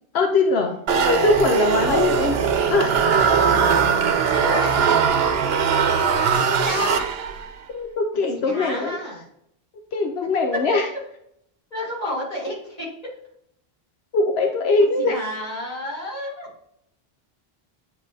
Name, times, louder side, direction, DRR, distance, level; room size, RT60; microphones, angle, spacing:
voice 1, 0.1-2.4 2.7-3.1 7.7-9.0 9.9-10.9 14.1-15.2, left 3 dB, 90° left, 4 dB, 1.0 m, -21 dB
sound 1, 0.9-7.5, right 6 dB, 80° right, 0.9 m, -20 dB
voice 2, 4.1-4.8 6.3-7.1 8.3-9.2 11.7-12.9 15.1-16.5, left 1 dB, 40° left, -6 dB, 3.0 m, -30 dB
9.4 x 4.4 x 2.7 m, 0.72 s
omnidirectional pair, 1.0 m